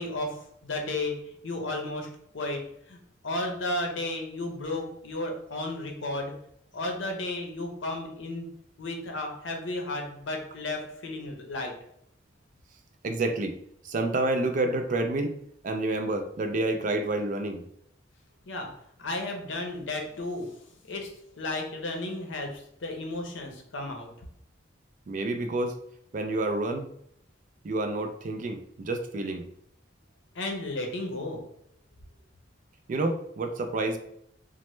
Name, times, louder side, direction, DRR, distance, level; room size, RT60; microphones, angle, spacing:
voice 1, 0.0-2.6 2.9-3.0 3.2-6.3 6.7-8.5 8.8-11.7 18.5-18.7 19.0-21.1 21.4-24.1 30.3-31.4, left 2 dB, 80° left, 2 dB, 0.7 m, -33 dB
voice 2, 13.0-13.6 13.8-15.3 15.6-17.7 25.1-25.8 26.1-26.9 27.6-29.4 32.9-34.0, right 2 dB, 45° right, 6 dB, 0.3 m, -29 dB
3.0 x 2.1 x 3.1 m, 0.72 s
head